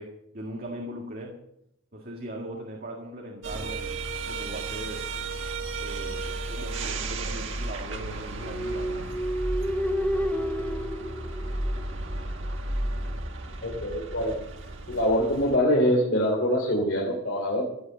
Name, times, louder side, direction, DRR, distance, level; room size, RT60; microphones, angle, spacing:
voice 1, 0.0-1.4 1.9-5.1 5.8-8.9, right 1 dB, 45° right, 1 dB, 1.9 m, -39 dB
sound 1, 3.4-15.6, right 2 dB, 65° right, 1.6 m, -33 dB
sound 2, 8.4-12.2, equal, 5° left, 0.7 m, -30 dB
voice 2, 13.6-14.3 14.9-17.6, equal, 60° left, -2 dB, 3.1 m, -24 dB
16.0 x 8.3 x 6.9 m, 0.78 s
head